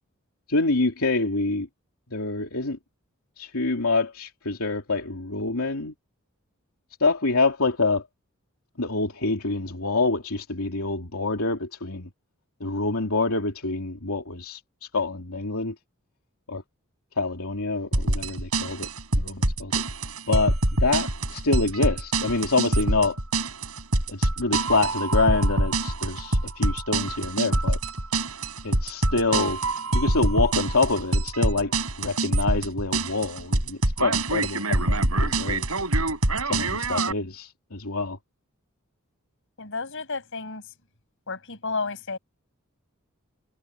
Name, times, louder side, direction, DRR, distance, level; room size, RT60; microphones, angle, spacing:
voice 1, 0.5-1.7 2.1-2.8 3.4-5.9 7.0-8.0 8.8-12.1 12.6-15.7 16.5-16.6 17.2-18.9 19.1-19.8 20.3-23.2 24.1-27.8 28.6-29.6 29.9-31.7 32.0-35.7 36.4-38.2, left 3 dB, 90° left, 2.9 m, -26 dB
sound 1, 17.9-37.1, right 2 dB, 85° right, 7.3 m, -25 dB
voice 2, 39.6-40.6 41.3-42.2, left 4 dB, 60° left, 7.2 m, -32 dB
head